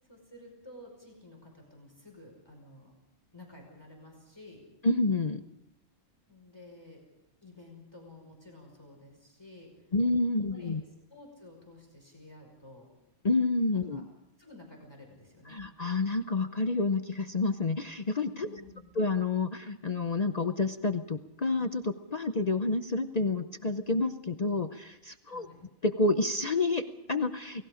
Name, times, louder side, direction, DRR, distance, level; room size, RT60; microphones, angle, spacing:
voice 1, 0.1-2.9 3.3-4.6 6.3-7.0 7.4-9.9 10.5-10.8 11.1-12.9 13.7-14.0 14.4-15.6 18.3-18.9 25.3-25.6, left 2 dB, 20° left, 1 dB, 5.2 m, -52 dB
voice 2, 4.8-5.4 9.9-10.8 13.2-14.1 15.5-18.5 19.0-25.5 25.8-27.6, left 3 dB, 35° left, 8 dB, 0.8 m, -29 dB
29.0 x 19.0 x 5.1 m, 0.88 s
omnidirectional pair, 1.3 m